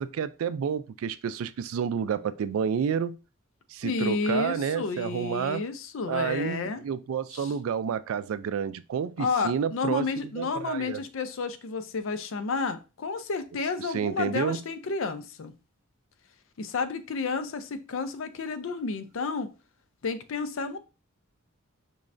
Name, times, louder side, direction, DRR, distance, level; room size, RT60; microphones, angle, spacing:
voice 1, 0.0-3.2 3.7-5.7 6.1-11.0 13.8-14.6, right 7 dB, 75° right, 0.3 m, -30 dB
voice 2, 3.8-6.8 7.3-7.5 9.2-15.5 16.6-19.5 20.0-20.8, left 4 dB, 65° left, 0.5 m, -31 dB
4.6 x 3.2 x 2.5 m
head